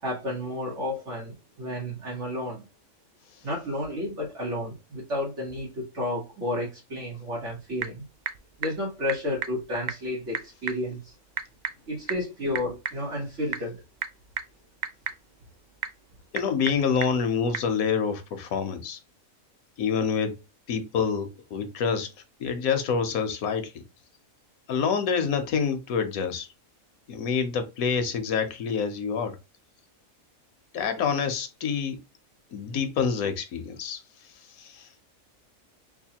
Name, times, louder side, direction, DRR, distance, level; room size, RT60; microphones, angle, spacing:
voice 1, 0.0-2.6 3.4-8.0 8.6-11.1 11.9-13.8, left 1 dB, 60° right, 1.5 m, -31 dB
Typing / Telephone, 7.2-17.7, right 7 dB, 80° right, 0.4 m, -38 dB
voice 2, 16.3-19.0 19.8-20.4 20.7-23.8 24.7-26.5 27.1-29.4 30.7-32.0 32.5-34.9, left 6 dB, 85° left, 1.2 m, -27 dB
4.8 x 2.4 x 2.8 m
omnidirectional pair, 1.4 m